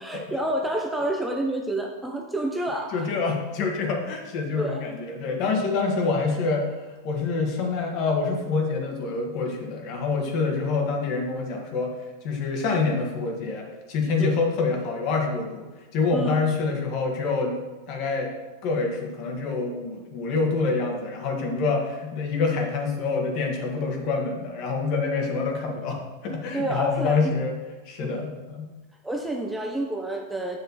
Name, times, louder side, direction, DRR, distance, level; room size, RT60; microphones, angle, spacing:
voice 1, 0.0-3.1 4.6-4.9 14.2-14.4 16.1-16.4 26.5-27.4 28.0-28.3 29.0-30.6, right 1 dB, 5° right, 2 dB, 0.6 m, -29 dB
voice 2, 2.9-6.7 7.0-11.9 12.2-15.7 15.9-18.3 18.6-27.5 27.8-28.7, left 4 dB, 45° left, 2 dB, 1.6 m, -26 dB
7.2 x 6.5 x 4.2 m, 1.2 s
supercardioid pair, 145°, 0 cm